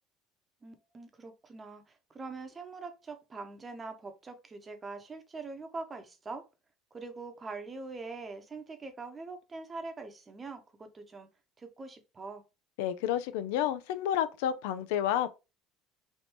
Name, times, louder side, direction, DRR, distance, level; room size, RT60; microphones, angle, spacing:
voice 1, 0.6-6.4 6.9-11.3 11.6-12.4, right 3 dB, 25° right, 0.7 m, -43 dB
voice 2, 12.8-15.3, left 10 dB, 85° left, 0.3 m, -30 dB
3.4 x 2.6 x 2.9 m
supercardioid pair, 115°, 0 cm